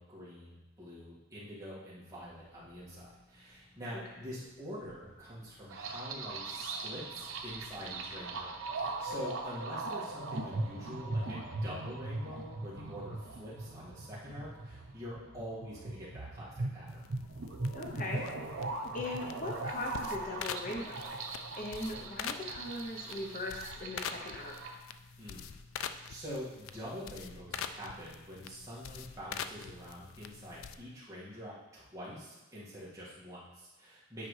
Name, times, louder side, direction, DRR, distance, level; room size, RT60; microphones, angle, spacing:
voice 1, 0.0-17.0 25.2-25.5 25.8-34.3, equal, 15° right, -8 dB, 1.9 m, -45 dB
sound 1, 2.2-15.1, left 1 dB, 5° left, 1.2 m, -60 dB
sound 2, 5.7-24.7, right 2 dB, 80° right, 0.7 m, -40 dB
sound 3, 16.9-30.8, left 7 dB, 85° left, 0.4 m, -45 dB
voice 2, 17.7-18.2 18.5-21.0 21.6-24.7, left 2 dB, 40° left, 0 dB, 0.7 m, -40 dB
9.0 x 4.9 x 3.2 m, 1.1 s
head